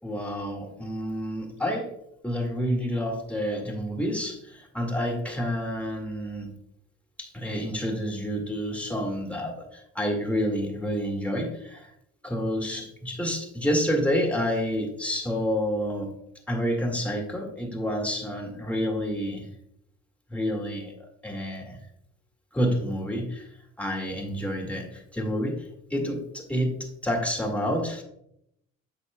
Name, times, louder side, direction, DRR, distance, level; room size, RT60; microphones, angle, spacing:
voice 1, 0.0-2.0 2.2-6.5 7.2-11.9 12.2-16.1 16.5-19.5 20.3-20.9 21.2-21.8 22.5-23.5 23.8-28.0, equal, 5° left, 1 dB, 1.9 m, -29 dB
8.7 x 6.4 x 2.2 m, 0.76 s
cardioid pair, 90°, 30 cm